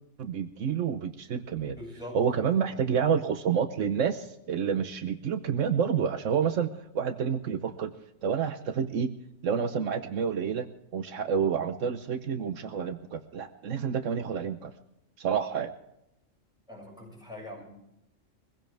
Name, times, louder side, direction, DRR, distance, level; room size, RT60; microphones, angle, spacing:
voice 1, 0.2-1.8 2.1-7.9 8.2-9.1 9.4-10.7 10.9-14.7 15.2-15.7, right 7 dB, 80° right, 10 dB, 1.2 m, -29 dB
voice 2, 1.8-2.6 16.7-17.6, left 1 dB, 5° right, -2 dB, 6.6 m, -43 dB
23.0 x 15.5 x 3.4 m, 0.85 s
omnidirectional pair, 1.3 m